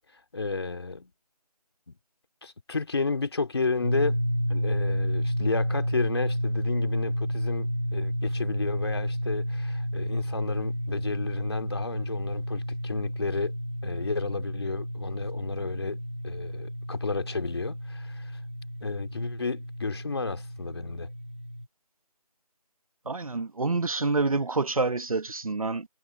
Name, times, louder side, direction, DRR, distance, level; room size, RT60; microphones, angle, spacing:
voice 1, 0.3-1.1 1.9-2.0 2.4-4.2 4.5-13.5 13.8-18.4 18.8-21.1, left 4 dB, 40° left, 2.7 m, -32 dB
sound 1, 3.8-21.6, equal, 20° right, 0.6 m, -31 dB
voice 2, 23.0-25.9, right 3 dB, 60° right, 1.4 m, -27 dB
figure-of-eight pair, 175°, 20 cm